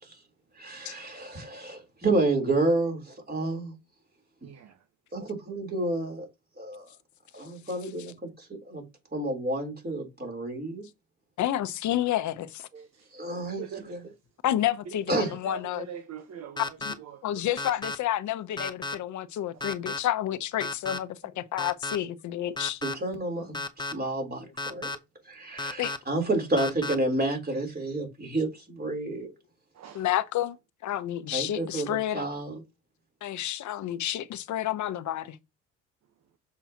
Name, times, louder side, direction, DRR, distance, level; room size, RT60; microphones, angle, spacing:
voice 1, 0.6-3.8 5.1-6.3 6.6-6.9 7.3-8.8 9.1-10.8 12.7-12.8 13.1-14.0 15.1-15.3 22.8-25.0 25.3-29.3 31.3-32.5, right 2 dB, 30° right, 3.8 m, -30 dB
voice 2, 4.4-4.8 12.8-13.2 13.6-14.0 14.9-17.5 19.5-19.6 29.7-30.1, right 7 dB, 55° right, 1.1 m, -42 dB
voice 3, 11.4-12.7 14.4-15.9 16.8-16.9 17.2-22.8 23.4-23.5 25.8-25.9 29.9-30.6 30.8-32.3 33.2-35.4, left 12 dB, 60° left, 0.9 m, -30 dB
sound 1, 16.6-16.9 17.6-17.9 18.6-18.9 19.6-20.0 20.6-21.0 21.6-22.0 22.6-22.9 23.5-23.9 24.6-24.9 25.6-26.0 26.6-26.9, left 3 dB, 15° left, 0.8 m, -33 dB
7.1 x 5.7 x 2.9 m
supercardioid pair, 70°, 33 cm